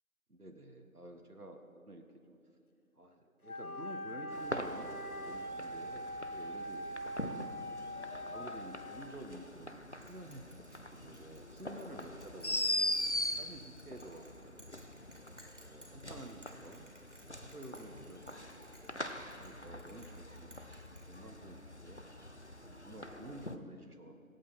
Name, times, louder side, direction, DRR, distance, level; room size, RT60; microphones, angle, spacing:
voice 1, 0.3-2.4 3.0-7.4 8.2-12.9 13.4-14.7 15.5-16.9 17.2-19.1 19.4-22.1 22.7-24.2, right 1 dB, 90° right, 4 dB, 1.7 m, -51 dB
Wind instrument woodwind instrument, 3.4-9.4, equal, 75° left, 1.0 m, -43 dB
sound 1, 4.3-23.6, left 1 dB, 50° left, 0.7 m, -42 dB
Bell, 10.0-21.7, equal, 55° right, 2.5 m, -61 dB
24.0 x 8.6 x 4.3 m, 2.7 s
figure-of-eight pair, 180°, 44 cm